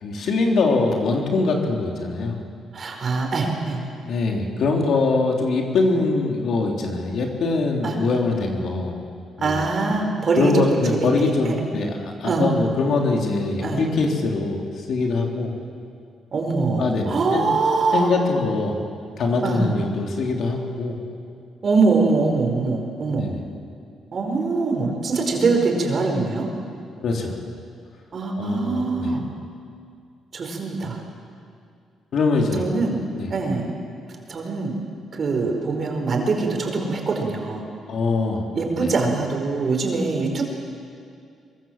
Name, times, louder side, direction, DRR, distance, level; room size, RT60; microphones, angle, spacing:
voice 1, 0.0-2.4 4.0-9.0 9.4-9.7 10.4-15.5 16.8-17.5 17.9-18.8 19.2-21.0 23.1-23.4 27.0-27.4 28.4-29.2 32.1-32.6 33.1-33.3 37.9-38.4 38.8-38.9, left 3 dB, 65° left, 1 dB, 3.6 m, -23 dB
voice 2, 2.7-3.8 7.8-8.0 9.4-11.5 12.2-12.5 13.6-13.8 16.3-18.1 19.4-19.7 21.6-23.3 24.1-26.5 28.1-29.3 30.3-31.0 32.5-33.0 33.3-33.7 34.3-34.7 35.1-37.7 38.5-40.4, right 3 dB, 45° right, 2 dB, 5.1 m, -23 dB
23.5 x 23.0 x 7.5 m, 2.3 s
cardioid pair, 90°, 0 cm